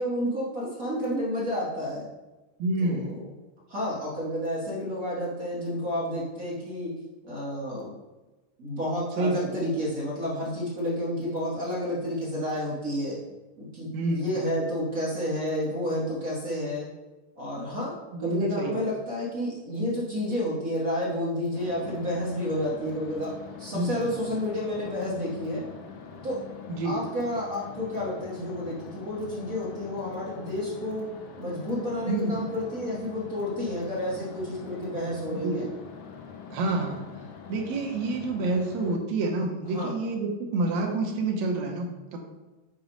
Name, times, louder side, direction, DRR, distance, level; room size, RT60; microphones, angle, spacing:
voice 1, 0.0-2.1 2.8-3.1 3.7-6.9 7.2-7.9 8.6-13.2 13.6-16.9 17.4-17.9 18.2-23.3 23.6-25.6 26.2-26.4 26.8-31.1 31.4-35.6 39.7-39.9, left 1 dB, 50° right, -6 dB, 1.0 m, -30 dB
voice 2, 2.6-3.1 9.2-9.5 13.9-14.3 18.1-18.8 23.7-24.0 26.7-27.0 32.1-32.4 35.3-35.6 36.5-37.0 37.5-42.2, right 2 dB, 70° right, 1 dB, 2.0 m, -28 dB
sound 1, 21.5-39.0, left 6 dB, 85° left, 2.2 m, -44 dB
7.1 x 3.1 x 5.1 m, 1.1 s
omnidirectional pair, 3.4 m